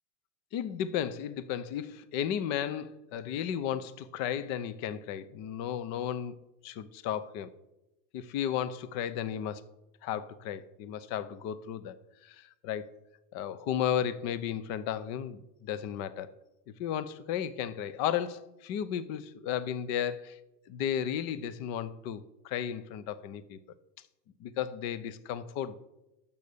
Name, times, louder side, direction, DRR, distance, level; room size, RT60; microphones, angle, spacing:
voice 1, 0.5-6.4 6.6-7.5 8.1-9.6 10.0-12.0 12.2-12.9 13.3-16.3 16.8-20.4 20.7-23.6 24.4-25.8, left 9 dB, 35° left, 16 dB, 0.7 m, -34 dB
12.0 x 7.1 x 6.8 m, 0.93 s
supercardioid pair, 145°, 48 cm